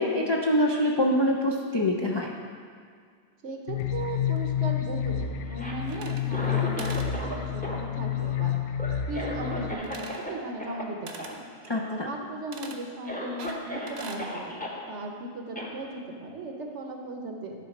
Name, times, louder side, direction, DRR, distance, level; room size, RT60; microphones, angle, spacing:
voice 1, 0.0-2.3 11.7-12.1, left 1 dB, 45° left, -1 dB, 0.3 m, -25 dB
voice 2, 3.4-8.5 9.0-11.5 11.8-14.6 14.9-17.5, right 2 dB, 70° right, 2 dB, 1.2 m, -37 dB
sound 1, 3.7-9.7, left 10 dB, 80° left, 1.0 m, -29 dB
Cough, 5.4-7.4 7.6-10.3 10.6-10.8 11.2-11.4 11.6-12.2 12.6-12.7 13.1-14.8 15.6-15.7, equal, 10° left, 0.8 m, -36 dB
sound 2, 5.8-6.5 6.8-7.1 9.8-10.3 11.1-11.4 12.5-12.8 13.4-14.3, right 4 dB, 45° right, 0.6 m, -42 dB
9.6 x 4.1 x 5.9 m, 2.1 s
omnidirectional pair, 1.2 m